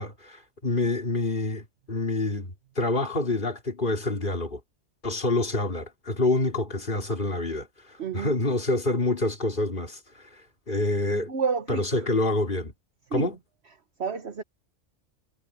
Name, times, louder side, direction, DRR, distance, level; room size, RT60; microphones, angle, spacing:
voice 1, 0.0-4.6 5.0-11.3 11.7-12.7 13.1-13.4, left 2 dB, 45° left, 3.5 m, -27 dB
voice 2, 8.0-8.3 11.3-11.8 13.1-13.3 14.0-14.4, right 5 dB, 60° right, 1.4 m, -29 dB
omnidirectional pair, 1.2 m